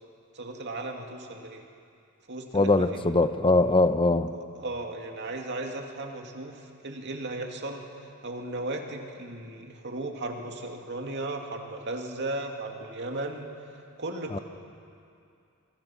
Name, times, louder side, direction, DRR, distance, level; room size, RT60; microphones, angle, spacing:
voice 1, 0.3-1.6 2.3-3.0 4.5-7.8 8.2-13.5 14.0-14.4, right 2 dB, 55° right, 2 dB, 2.4 m, -36 dB
voice 2, 2.5-4.3 14.3-14.4, left 2 dB, 25° left, 10 dB, 0.9 m, -22 dB
26.0 x 24.5 x 5.9 m, 2.5 s
head